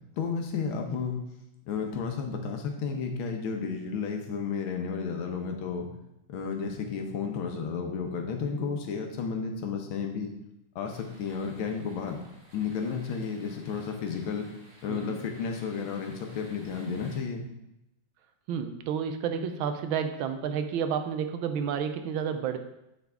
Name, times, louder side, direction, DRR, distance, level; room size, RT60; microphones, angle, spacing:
voice 1, 0.2-1.2 1.7-5.9 6.3-10.3 10.7-12.2 12.5-14.5 14.8-17.4, left 5 dB, 80° left, 3 dB, 1.7 m, -32 dB
sound 1, 10.9-17.2, right 1 dB, 50° right, 1.4 m, -55 dB
voice 2, 18.5-22.6, right 7 dB, 85° right, 8 dB, 1.4 m, -30 dB
9.3 x 4.0 x 3.5 m, 0.87 s
omnidirectional pair, 2.2 m